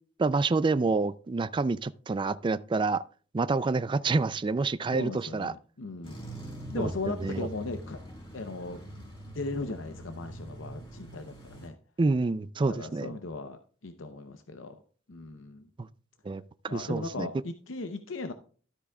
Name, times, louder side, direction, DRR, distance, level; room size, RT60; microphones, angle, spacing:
voice 1, 0.2-3.0 3.3-5.5 6.8-6.9 7.2-7.5 12.0-13.1 15.8-15.9 16.2-17.3, right 3 dB, 25° right, 0.3 m, -28 dB
voice 2, 4.9-6.2 6.7-8.0 8.3-9.1 9.3-11.7 12.7-14.8 15.1-15.7 16.7-18.3, left 3 dB, 70° left, 0.7 m, -37 dB
sound 1, 6.0-11.7, equal, 25° left, 3.7 m, -43 dB
12.5 x 8.4 x 2.3 m
head